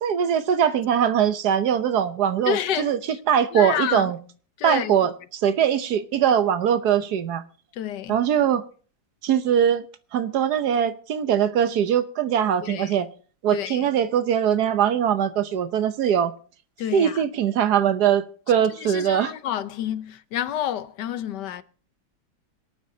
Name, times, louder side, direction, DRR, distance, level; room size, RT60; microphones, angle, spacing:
voice 1, 0.0-3.0 3.3-4.2 4.6-7.4 8.1-8.6 9.2-9.8 10.1-13.1 13.4-16.3 16.9-19.3, right 9 dB, 70° right, 1.4 m, -21 dB
voice 2, 2.5-2.9 3.5-4.1 4.6-4.9 7.8-8.2 12.6-12.9 13.5-13.9 16.8-17.2 18.8-21.6, left 10 dB, 80° left, 1.4 m, -29 dB
26.0 x 9.0 x 2.8 m
omnidirectional pair, 1.8 m